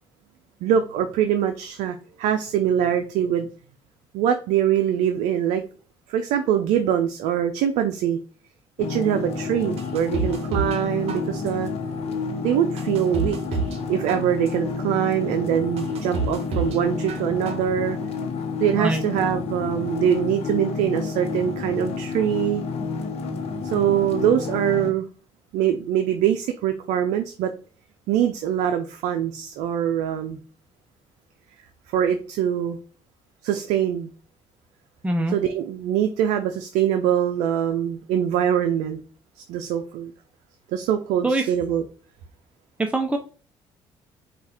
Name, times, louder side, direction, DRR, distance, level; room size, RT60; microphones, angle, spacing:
voice 1, 0.6-3.5 4.1-5.6 6.1-8.2 8.8-11.7 12.4-13.4 13.9-18.0 18.6-22.6 23.7-25.1 25.5-27.5 28.1-30.4 31.9-32.8 33.4-34.1 35.3-39.0 39.5-40.1 40.7-41.8, right 9 dB, 80° right, 7 dB, 0.4 m, -23 dB
sound 1, 8.8-24.9, left 4 dB, 65° left, 0.9 m, -30 dB
sound 2, 9.8-10.8 11.1-11.7 12.2-12.3 12.8-13.8 14.1-14.7 15.2-15.3 15.8-16.8 17.1-17.7 18.0-18.1, right 4 dB, 65° right, 0.8 m, -29 dB
voice 2, 35.0-35.4 41.2-41.5 42.8-43.2, right 2 dB, 10° right, 4 dB, 0.6 m, -23 dB
4.6 x 2.4 x 4.3 m, 0.39 s
supercardioid pair, 70°, 11 cm